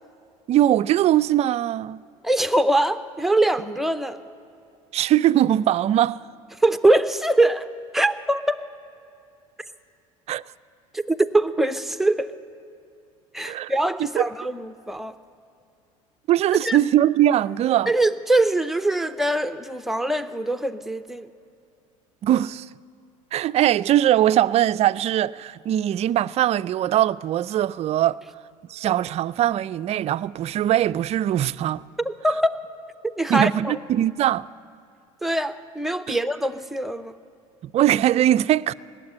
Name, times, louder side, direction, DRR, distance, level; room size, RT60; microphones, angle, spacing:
voice 1, 0.5-2.0 4.9-6.2 10.3-10.4 13.4-13.7 14.0-14.3 16.3-17.9 22.2-22.7 23.3-28.2 28.7-31.8 33.3-34.5 36.1-36.2 37.6-38.7, right 12 dB, 40° right, 0.3 m, -21 dB
voice 2, 2.2-4.2 6.6-7.7 7.9-8.6 10.9-12.3 13.3-15.2 16.6-16.8 17.9-21.3 32.0-32.5 33.0-33.8 35.2-37.1, right 1 dB, ahead, 0.7 m, -23 dB
19.0 x 7.5 x 9.8 m
hypercardioid pair, 75°, 18 cm